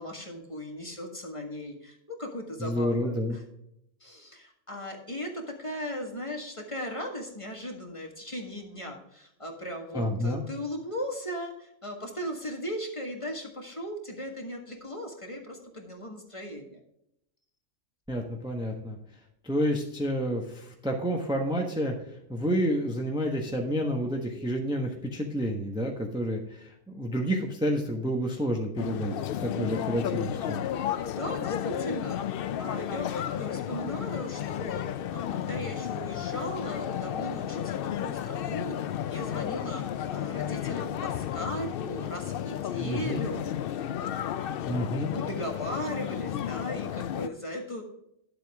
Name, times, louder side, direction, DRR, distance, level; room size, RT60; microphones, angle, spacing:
voice 1, 0.0-3.4 4.0-16.8 31.1-32.2 32.6-44.6 45.0-47.8, equal, 25° left, 2 dB, 1.7 m, -37 dB
voice 2, 2.6-3.4 9.9-10.4 18.1-19.0 19.4-21.9 22.3-29.1 29.4-30.6 42.8-43.3 44.7-45.1, equal, 5° right, 1 dB, 1.1 m, -29 dB
sound 1, 28.8-47.3, left 10 dB, 65° left, 0.5 m, -33 dB
11.5 x 7.9 x 3.5 m, 0.78 s
omnidirectional pair, 1.4 m